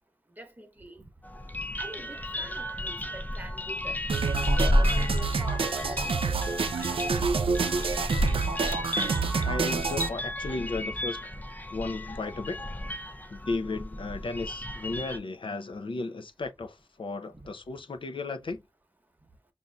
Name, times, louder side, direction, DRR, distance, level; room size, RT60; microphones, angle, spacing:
voice 1, 0.4-1.1 1.8-4.0 4.6-7.5, right 1 dB, 20° right, 1.0 m, -45 dB
sound 1, 1.2-15.2, left 1 dB, 20° left, 0.4 m, -32 dB
sound 2, 4.1-10.1, right 5 dB, 80° right, 0.4 m, -28 dB
voice 2, 9.4-11.2 11.7-12.6 13.3-18.6, left 3 dB, 65° left, 0.5 m, -34 dB
5.4 x 2.6 x 2.2 m
wide cardioid pair, 60°, 9 cm